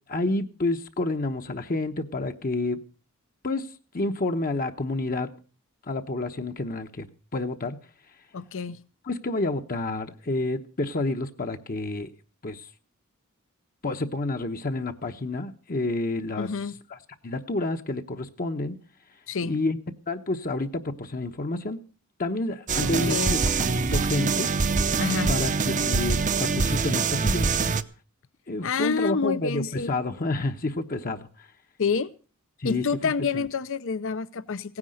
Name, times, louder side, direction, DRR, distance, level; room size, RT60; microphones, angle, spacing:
voice 1, 0.1-2.8 3.4-3.7 3.9-5.3 5.9-7.1 7.3-7.8 9.1-12.1 12.4-12.7 13.8-16.5 16.9-17.0 17.2-18.7 19.4-19.8 20.1-21.8 22.2-24.5 25.3-27.5 28.5-31.5 32.6-32.8 33.3-33.4, left 2 dB, 40° left, 1.0 m, -29 dB
voice 2, 8.3-8.8 16.4-16.7 19.3-19.5 22.8-23.4 25.0-25.3 28.6-29.9 31.8-32.1 32.6-34.8, left 5 dB, 60° left, 0.6 m, -28 dB
sound 1, 22.7-27.8, right 4 dB, 35° right, 0.7 m, -24 dB
17.0 x 9.8 x 6.4 m
head